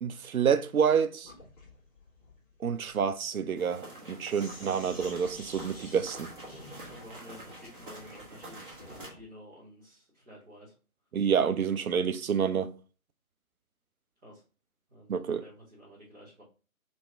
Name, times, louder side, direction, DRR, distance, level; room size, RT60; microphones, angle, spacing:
voice 1, 0.0-1.3 2.6-6.3 11.1-12.7 15.1-15.4, right 7 dB, 75° right, 0.5 m, -28 dB
Sink (filling or washing), 1.2-9.3, left 1 dB, 25° left, 1.3 m, -51 dB
sound 1, 3.6-9.1, right 1 dB, 35° right, 1.1 m, -47 dB
voice 2, 6.9-10.7 14.2-14.4 14.9-16.4, equal, 5° right, 1.0 m, -51 dB
3.0 x 2.8 x 3.3 m
figure-of-eight pair, 145°, 44 cm